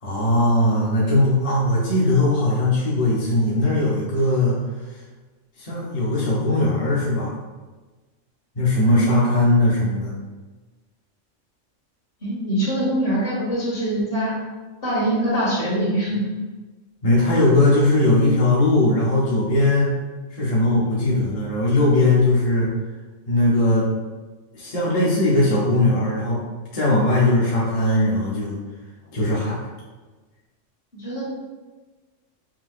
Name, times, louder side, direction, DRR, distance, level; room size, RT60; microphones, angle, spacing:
voice 1, 0.0-4.6 5.6-7.3 8.6-10.1 17.0-19.9 20.3-22.7 23.3-23.9 24.5-26.4 26.7-28.6 29.1-29.6, left 2 dB, 30° left, -8 dB, 0.9 m, -19 dB
voice 2, 8.9-9.4 12.2-14.3 14.8-16.3 30.9-31.2, right 1 dB, 50° left, -7 dB, 1.7 m, -23 dB
5.8 x 2.8 x 2.6 m, 1.3 s
omnidirectional pair, 1.3 m